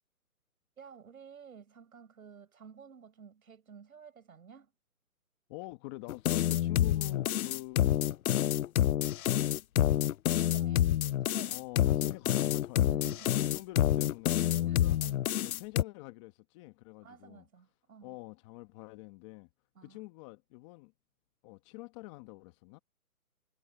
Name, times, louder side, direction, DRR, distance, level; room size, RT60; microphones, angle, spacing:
voice 1, 0.8-4.7 10.3-11.6 12.7-13.6 14.7-15.3 17.0-18.2 19.7-20.1, right 6 dB, 70° right, 6.6 m, -53 dB
voice 2, 5.5-8.0 11.5-13.0 13.3-15.0 15.4-17.4 18.0-19.5 19.8-20.9 21.4-22.8, left 21 dB, 20° left, 1.3 m, -46 dB
sound 1, 6.1-15.8, left 12 dB, 70° left, 0.5 m, -28 dB
hypercardioid pair, 155°, 45 cm